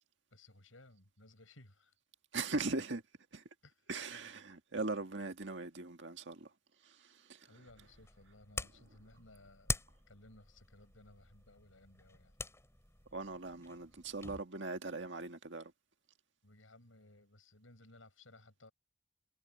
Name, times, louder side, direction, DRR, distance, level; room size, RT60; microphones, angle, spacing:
voice 1, 0.3-1.9 3.6-3.9 7.4-9.7 10.1-12.4 16.4-18.7, left 2 dB, 85° left, 7.2 m, -60 dB
voice 2, 2.3-3.0 3.3-3.4 3.9-6.5 13.1-15.7, right 3 dB, 65° right, 1.9 m, -39 dB
sound 1, 7.7-14.4, left 3 dB, 15° left, 5.3 m, -45 dB
head